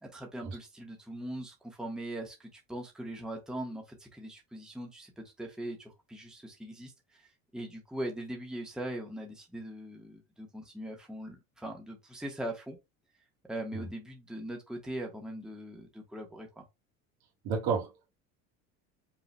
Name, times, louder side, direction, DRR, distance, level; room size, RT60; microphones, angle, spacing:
voice 1, 0.0-12.8 13.5-16.6, right 1 dB, ahead, 1.3 m, -41 dB
voice 2, 17.4-18.1, right 5 dB, 60° right, 2.1 m, -32 dB
5.7 x 3.8 x 2.2 m
supercardioid pair, 90°, 41 cm